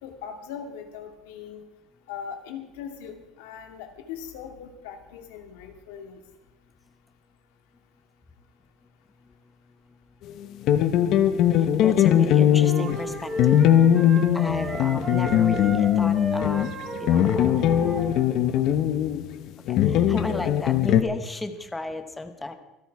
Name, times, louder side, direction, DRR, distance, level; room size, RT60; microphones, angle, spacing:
voice 1, 0.0-1.6 2.1-6.2, left 7 dB, 90° left, 5 dB, 2.4 m, -40 dB
voice 2, 10.4-16.7 17.0-17.8 19.7-22.5, left 2 dB, 10° left, 8 dB, 0.9 m, -35 dB
sound 1, 10.7-21.0, left 10 dB, 45° left, 0.8 m, -20 dB
sound 2, 12.5-18.3, right 1 dB, 15° right, 2.8 m, -33 dB
25.5 x 9.0 x 4.7 m, 0.98 s
cardioid pair, 165°, 0 cm